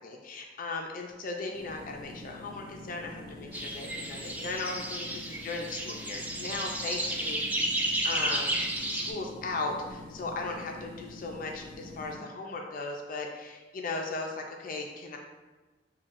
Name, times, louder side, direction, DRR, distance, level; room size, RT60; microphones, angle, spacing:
voice 1, 0.0-7.8 8.0-8.6 8.9-15.2, left 3 dB, 45° left, 2 dB, 0.4 m, -37 dB
sound 1, 1.5-12.1, left 2 dB, 20° left, 1.3 m, -46 dB
sound 2, 3.5-9.1, right 1 dB, 10° right, 0.4 m, -32 dB
6.8 x 2.6 x 2.5 m, 1.2 s
head